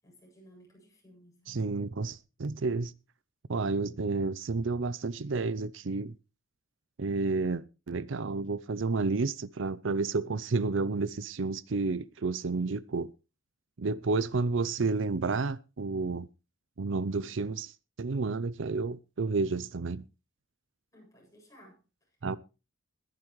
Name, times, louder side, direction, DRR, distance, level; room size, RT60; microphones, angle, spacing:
voice 1, 0.0-1.7 20.9-22.4, equal, 15° left, 8.0 m, -58 dB
voice 2, 1.5-2.9 3.5-6.1 7.0-13.1 13.8-16.3 16.8-20.0 22.2-22.4, right 3 dB, 65° right, 0.6 m, -31 dB
20.5 x 11.0 x 3.2 m
head